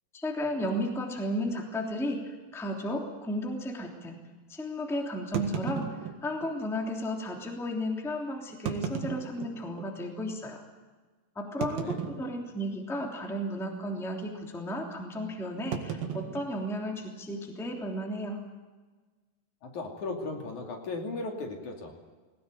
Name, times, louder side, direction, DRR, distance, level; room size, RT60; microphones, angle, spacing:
voice 1, 0.1-4.2 4.5-10.6 11.3-18.4, equal, ahead, 1 dB, 2.4 m, -34 dB
sound 1, 0.6-0.8 1.5-1.6 1.9-2.0 2.6-2.8 5.3-6.5 7.4-7.5 8.5-9.9 10.4-10.5 11.6-12.7 13.0-13.3 13.6-13.9 15.7-17.3, right 7 dB, 75° right, 3.6 m, -36 dB
voice 2, 11.8-12.1 19.6-21.9, left 3 dB, 55° left, 2 dB, 3.9 m, -36 dB
21.0 x 19.0 x 9.3 m, 1.3 s
omnidirectional pair, 4.2 m